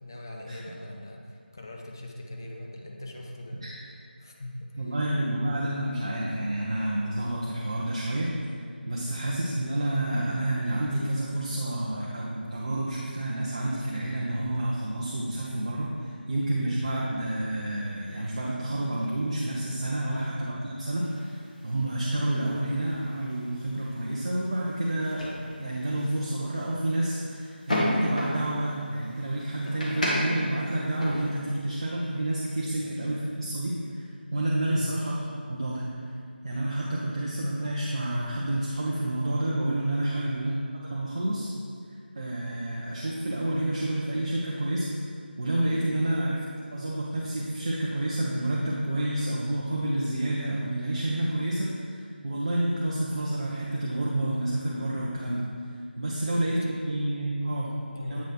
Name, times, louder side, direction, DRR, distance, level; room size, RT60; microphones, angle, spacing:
voice 1, 0.0-5.0 9.0-9.2 20.0-20.3 32.8-32.9 34.7-35.0 40.1-40.4 56.1-56.4 57.4-58.2, left 1 dB, 20° left, 0 dB, 0.4 m, -41 dB
voice 2, 4.8-8.3 8.9-25.3 25.6-35.2 35.5-35.9 36.4-40.6 40.9-41.5 42.2-44.9 45.4-46.4 46.7-55.4 56.0-57.7 58.0-58.2, right 1 dB, 30° right, -5 dB, 0.5 m, -29 dB
sound 1, 21.0-31.4, left 1 dB, 45° left, 1.2 m, -34 dB
8.0 x 3.1 x 4.3 m, 2.1 s
figure-of-eight pair, 165°, 6 cm